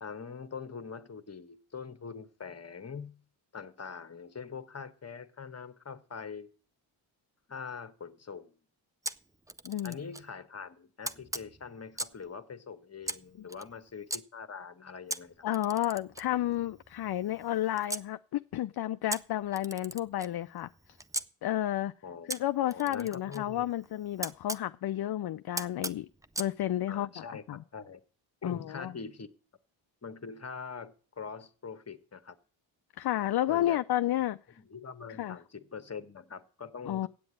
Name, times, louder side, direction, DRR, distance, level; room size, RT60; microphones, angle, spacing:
voice 1, 0.0-3.2 3.5-6.5 7.5-8.6 9.8-15.4 22.0-23.7 26.9-27.4 27.7-28.0 28.4-29.3 30.0-32.4 33.5-33.8 34.5-37.1, left 6 dB, 30° left, 1.1 m, -43 dB
Camera, 9.0-10.3 11.0-12.3 13.0-14.2 15.1-18.1 19.1-21.3 22.3-24.7 25.6-26.5, right 1 dB, 5° right, 0.5 m, -40 dB
voice 2, 9.6-10.0 15.4-20.7 21.4-21.9 22.3-26.1 26.4-27.1 27.5-27.6 28.4-28.9 33.0-34.4 35.2-35.4 36.9-37.1, left 13 dB, 55° left, 0.5 m, -31 dB
8.6 x 7.9 x 8.5 m
cardioid pair, 70°, 48 cm